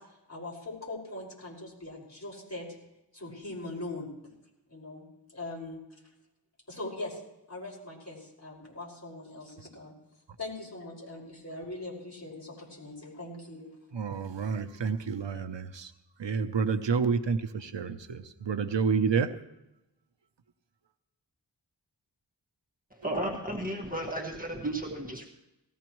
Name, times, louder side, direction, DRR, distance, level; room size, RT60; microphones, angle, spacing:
voice 1, 0.3-2.7 3.1-4.1 4.7-5.0 5.3-5.8 6.7-7.2 7.5-9.9 10.4-13.7, left 2 dB, 35° left, -3 dB, 5.5 m, -41 dB
voice 2, 13.9-15.9 16.2-19.3, right 5 dB, 80° right, 8 dB, 0.8 m, -29 dB
voice 3, 22.9-25.3, right 1 dB, 20° right, 0 dB, 1.7 m, -34 dB
19.0 x 15.0 x 3.1 m, 0.92 s
wide cardioid pair, 60°, 44 cm